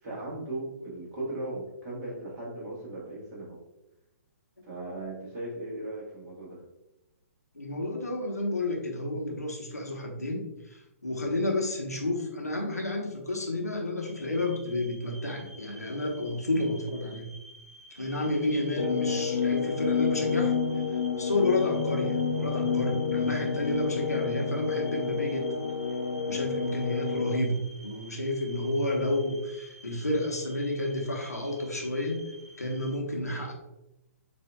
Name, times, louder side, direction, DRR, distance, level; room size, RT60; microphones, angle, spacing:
voice 1, 0.0-3.6 4.6-6.6, right 2 dB, 25° right, -5 dB, 1.4 m, -37 dB
voice 2, 7.5-10.4 10.7-17.3 17.9-20.5 21.2-25.5 26.3-32.2 32.6-33.5, left 1 dB, 80° left, 0 dB, 1.0 m, -30 dB
sound 1, 14.0-33.0, right 1 dB, 80° right, 1.0 m, -52 dB
sound 2, 18.8-27.4, left 6 dB, 55° left, 0.5 m, -29 dB
7.0 x 2.6 x 2.2 m, 0.94 s
figure-of-eight pair, 125°, 9 cm